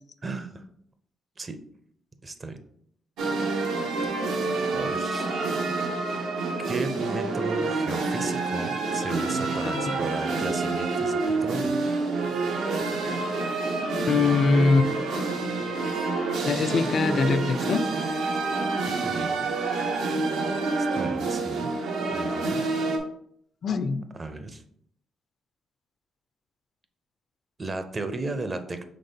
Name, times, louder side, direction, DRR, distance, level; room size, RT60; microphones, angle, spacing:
voice 1, 0.2-0.7 1.4-1.6 2.2-2.6 4.7-5.3 6.7-11.7 18.9-19.5 20.9-21.7 22.1-22.6 24.2-24.6 27.6-28.8, right 2 dB, 30° right, 9 dB, 0.5 m, -34 dB
sound 1, 3.2-23.0, right 3 dB, 80° right, 0.7 m, -28 dB
voice 2, 9.6-10.0 14.1-14.9 16.4-17.8 23.6-24.0, left 4 dB, 50° left, 11 dB, 0.3 m, -23 dB
5.2 x 3.6 x 2.7 m, 0.68 s
cardioid pair, 90°, 0 cm